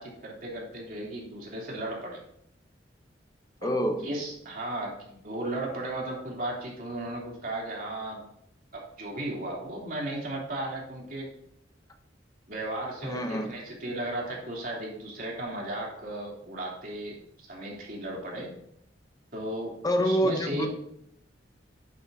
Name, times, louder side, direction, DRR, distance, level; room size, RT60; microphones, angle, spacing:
voice 1, 0.0-2.2 3.6-3.7 4.0-8.2 8.7-11.3 12.5-18.5 19.3-20.7, right 1 dB, 50° right, -2 dB, 3.2 m, -35 dB
voice 2, 3.6-4.1 13.0-13.5 19.8-20.7, equal, 20° left, 5 dB, 0.7 m, -26 dB
11.0 x 9.2 x 2.7 m, 0.73 s
head